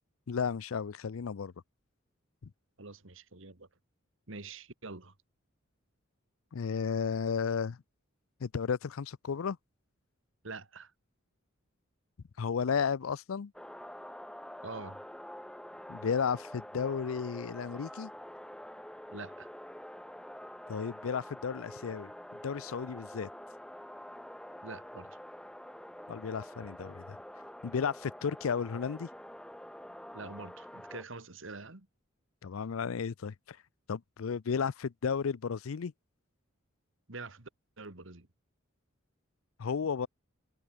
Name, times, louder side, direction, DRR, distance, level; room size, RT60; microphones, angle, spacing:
voice 1, 0.3-1.5 2.4-2.5 6.5-7.8 8.4-9.6 12.4-13.5 15.9-18.1 20.7-22.1 22.4-23.3 26.1-27.2 27.6-29.1 32.4-33.6 33.9-35.9 39.6-40.1, left 6 dB, 85° left, 0.5 m, -33 dB
voice 2, 2.8-3.7 4.3-5.1 10.4-10.9 14.6-15.0 19.1-19.5 24.6-25.2 30.1-31.9 37.1-37.5 37.8-38.3, right 3 dB, 65° right, 2.2 m, -45 dB
sound 1, 13.5-31.0, equal, 5° left, 1.0 m, -47 dB
head